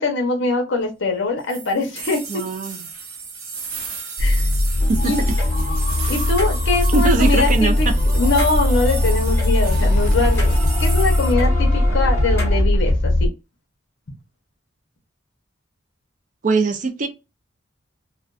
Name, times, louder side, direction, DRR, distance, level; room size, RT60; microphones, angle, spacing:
voice 1, 0.0-2.2 4.2-4.4 5.0-5.2 6.1-7.9 8.1-10.5 10.8-13.3, left 3 dB, 60° left, 0.8 m, -22 dB
sound 1, 1.5-11.3, right 5 dB, 85° right, 0.7 m, -34 dB
voice 2, 2.3-2.9 4.9-5.1 6.9-7.9 16.4-17.1, right 3 dB, 40° right, 0.4 m, -21 dB
sound 2, 4.2-13.3, left 1 dB, 35° left, 0.4 m, -19 dB
sound 3, 4.8-12.6, left 1 dB, 15° left, 1.1 m, -30 dB
2.5 x 2.2 x 2.3 m
head